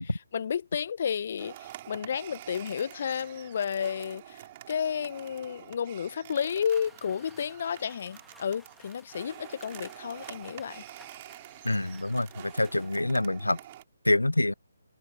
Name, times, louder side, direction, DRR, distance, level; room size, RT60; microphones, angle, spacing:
voice 1, 0.0-4.4 4.7-10.8, left 7 dB, 45° left, 0.8 m, -32 dB
sound 1, 1.4-13.8, right 14 dB, 30° right, 4.1 m, -47 dB
sound 2, 6.7-12.9, left 2 dB, ahead, 2.0 m, -57 dB
voice 2, 11.6-13.6 14.1-14.5, left 2 dB, 85° left, 0.4 m, -26 dB
figure-of-eight pair, 145°, 0 cm